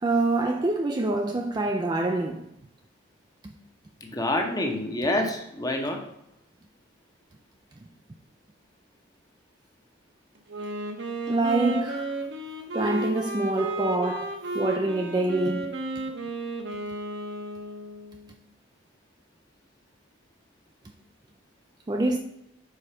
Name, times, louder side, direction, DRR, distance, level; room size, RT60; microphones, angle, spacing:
voice 1, 0.0-2.5 3.4-3.5 11.3-12.2 12.7-15.8 21.9-22.2, right 2 dB, 20° right, 0.3 m, -26 dB
voice 2, 4.0-6.0 11.6-11.8, left 1 dB, 20° left, 0.8 m, -27 dB
Wind instrument woodwind instrument, 10.5-18.3, right 2 dB, 60° right, 0.9 m, -33 dB
4.9 x 3.9 x 5.5 m
head